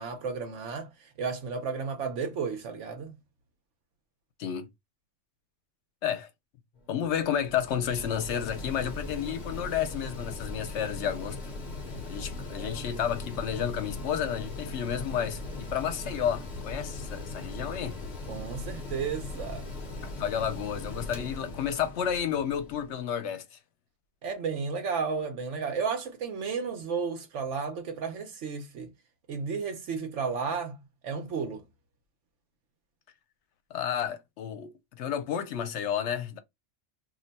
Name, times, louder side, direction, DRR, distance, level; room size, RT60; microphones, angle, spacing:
voice 1, 0.0-3.2 12.5-12.8 18.3-19.7 24.2-28.9 29.3-30.8 31.0-31.7, right 5 dB, 80° right, 1.0 m, -33 dB
Mechanical fan, 6.7-23.0, left 2 dB, 45° left, 0.8 m, -39 dB
voice 2, 6.9-11.4 12.1-18.0 20.0-23.4 33.7-36.4, left 8 dB, 75° left, 0.9 m, -31 dB
2.6 x 2.2 x 3.9 m
omnidirectional pair, 1.2 m